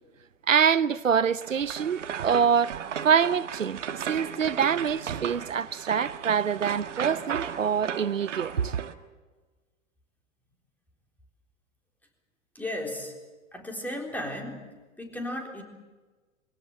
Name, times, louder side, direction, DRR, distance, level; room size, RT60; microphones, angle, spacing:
voice 1, 0.5-2.8 3.0-8.8, right 7 dB, 90° right, 0.7 m, -25 dB
sound 1, 1.3-8.9, right 8 dB, 70° right, 1.4 m, -35 dB
voice 2, 12.5-13.2 13.5-14.7 15.0-15.6, left 1 dB, 5° left, 3.8 m, -35 dB
23.0 x 17.0 x 8.0 m
figure-of-eight pair, 100°, 38 cm